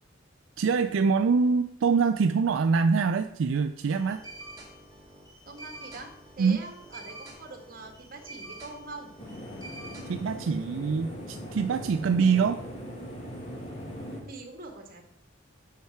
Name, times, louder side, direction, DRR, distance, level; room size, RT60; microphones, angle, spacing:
voice 1, 0.6-4.2 6.4-6.6 10.0-12.6, right 5 dB, 75° right, 8 dB, 0.4 m, -24 dB
sound 1, 3.9-10.4, right 1 dB, 20° right, 2.5 m, -47 dB
voice 2, 5.5-9.1 14.2-15.0, right 3 dB, 50° right, 4 dB, 1.6 m, -43 dB
sound 2, 9.2-14.2, equal, 30° left, 2.1 m, -40 dB
7.4 x 5.7 x 5.8 m, 0.73 s
head